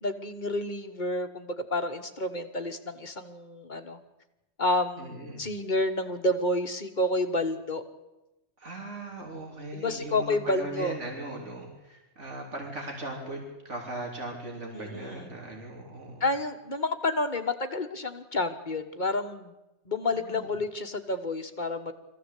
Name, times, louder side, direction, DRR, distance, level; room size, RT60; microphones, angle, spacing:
voice 1, 0.0-4.0 4.6-7.8 9.7-11.0 14.7-15.3 16.2-19.5 19.8-21.9, left 2 dB, 40° left, 8 dB, 1.5 m, -30 dB
voice 2, 5.0-5.4 8.6-16.3 20.1-20.5, right 2 dB, 75° right, 0 dB, 3.8 m, -39 dB
22.5 x 15.0 x 8.3 m, 0.99 s
omnidirectional pair, 1.2 m